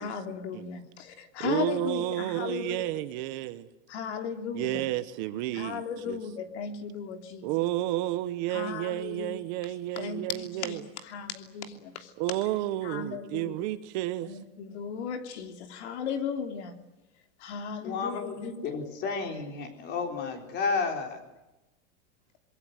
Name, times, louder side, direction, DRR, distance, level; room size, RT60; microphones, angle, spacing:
voice 1, 0.0-2.8 3.9-4.8 5.5-7.5 8.5-9.4 10.0-12.1 12.8-13.6 14.3-16.7 17.4-18.5, left 7 dB, 60° left, 3.1 m, -36 dB
voice 2, 1.4-3.7 4.5-6.2 7.4-10.8 12.2-14.4, right 15 dB, 35° right, 1.0 m, -31 dB
voice 3, 17.8-21.2, left 4 dB, 25° left, 4.1 m, -32 dB
25.5 x 22.5 x 8.1 m
supercardioid pair, 170°, 38 cm